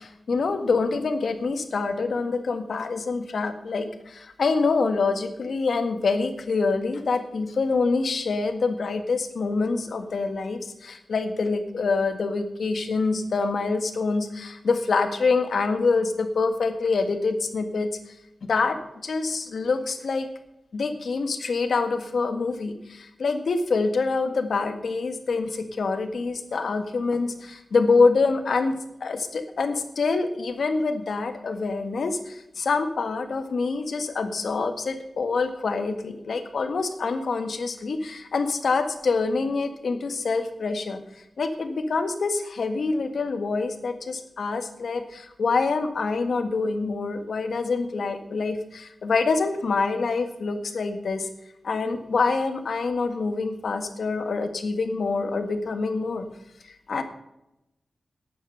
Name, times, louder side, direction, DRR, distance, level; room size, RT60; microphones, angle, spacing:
voice 1, 0.0-17.9 18.4-20.3 20.7-41.0 41.4-51.3 51.6-56.3 56.9-57.0, left 4 dB, 75° left, 8 dB, 1.7 m, -26 dB
11.5 x 9.3 x 6.6 m, 0.87 s
wide cardioid pair, 125°, 0 cm